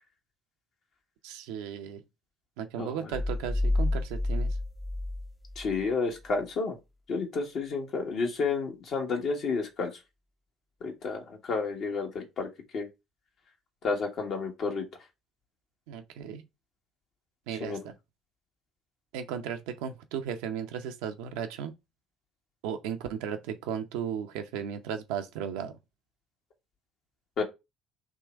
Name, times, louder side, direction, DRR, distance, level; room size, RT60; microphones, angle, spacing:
voice 1, 1.2-2.0 2.6-4.6 15.9-16.4 17.5-17.9 19.1-21.7 22.6-25.7, right 8 dB, 70° right, 0.6 m, -35 dB
voice 2, 2.8-3.1 5.6-6.8 7.1-9.9 10.8-12.5 12.7-12.9 13.8-14.8 17.6-17.9 27.4-27.5, left 4 dB, 55° left, 1.5 m, -31 dB
sound 1, 3.1-5.9, left 2 dB, 25° left, 0.7 m, -29 dB
3.6 x 3.0 x 4.4 m
hypercardioid pair, 55°, 0 cm